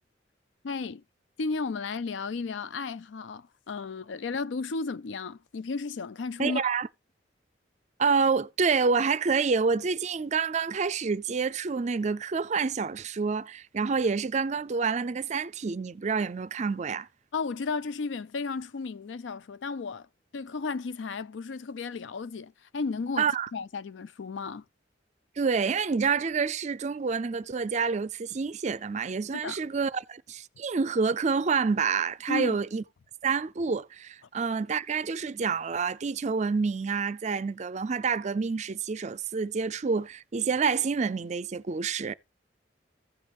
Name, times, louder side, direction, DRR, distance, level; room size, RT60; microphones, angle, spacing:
voice 1, 0.6-1.0 1.4-6.7 17.3-20.1 20.3-24.6 29.3-29.6 32.3-32.6, left 4 dB, 85° left, 0.5 m, -34 dB
voice 2, 6.4-6.9 8.0-17.1 23.2-23.5 25.4-32.8 33.2-42.1, right 5 dB, 40° right, 0.4 m, -28 dB
15.5 x 5.2 x 3.0 m
head